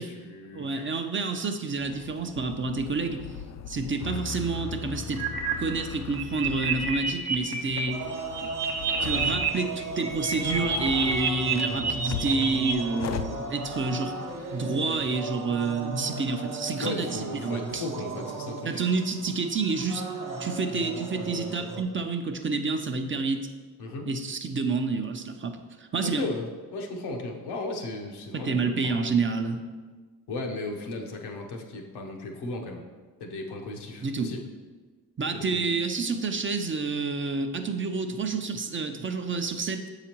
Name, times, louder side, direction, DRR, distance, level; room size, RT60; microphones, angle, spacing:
voice 1, 0.0-0.9 16.8-18.8 23.8-24.1 26.0-29.1 30.3-32.8 33.2-34.4 35.3-35.6, left 2 dB, 80° left, 2 dB, 0.9 m, -35 dB
voice 2, 0.5-3.3 3.7-5.2 5.6-8.0 9.0-14.1 14.5-17.9 18.6-20.1 20.4-23.5 24.1-26.2 28.3-29.6 34.0-34.3 35.2-39.9, right 4 dB, 30° right, 6 dB, 0.5 m, -29 dB
sound 1, 1.8-15.1, left 7 dB, 45° left, 0.4 m, -39 dB
sound 2, 5.1-5.5 5.9-7.8 8.1-9.5 9.8-12.7, right 5 dB, 80° right, 1.0 m, -29 dB
sound 3, 7.9-21.8, right 3 dB, 50° right, 0.9 m, -37 dB
6.9 x 4.9 x 2.9 m, 1.4 s
supercardioid pair, 60°, 39 cm